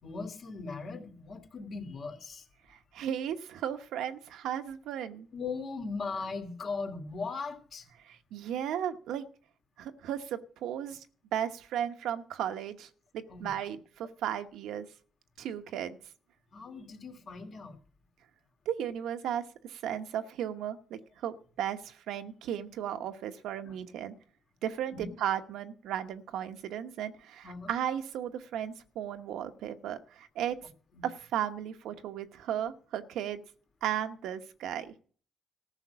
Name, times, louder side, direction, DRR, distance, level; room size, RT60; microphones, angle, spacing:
voice 1, 0.0-2.5 5.3-7.9 13.3-13.5 16.5-17.8 23.6-23.8 24.9-25.2 27.4-27.7 30.9-31.1, left 4 dB, 55° left, 5 dB, 2.7 m, -39 dB
voice 2, 2.7-5.3 8.0-9.2 9.8-11.0 11.3-12.9 13.1-14.9 15.4-16.0 18.7-24.1 24.6-30.6 31.0-33.4 33.8-34.9, right 10 dB, 85° right, 8 dB, 1.0 m, -35 dB
14.5 x 5.9 x 8.5 m, 0.43 s
cardioid pair, 90°, 0 cm